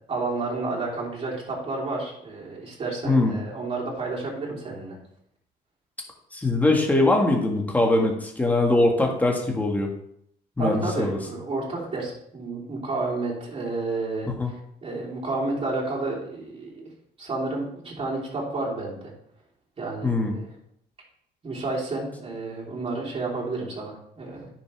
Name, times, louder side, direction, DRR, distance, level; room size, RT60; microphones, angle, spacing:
voice 1, 0.1-5.0 10.6-14.6 14.8-16.9 17.2-19.1 19.8-20.5 21.4-24.5, right 3 dB, 35° right, -4 dB, 3.3 m, -31 dB
voice 2, 3.0-3.4 6.3-9.9 10.6-11.2 14.4-14.5 20.0-20.3, left 2 dB, 10° left, 1 dB, 1.7 m, -22 dB
10.0 x 6.1 x 3.5 m, 0.71 s
cardioid pair, 110°, 17 cm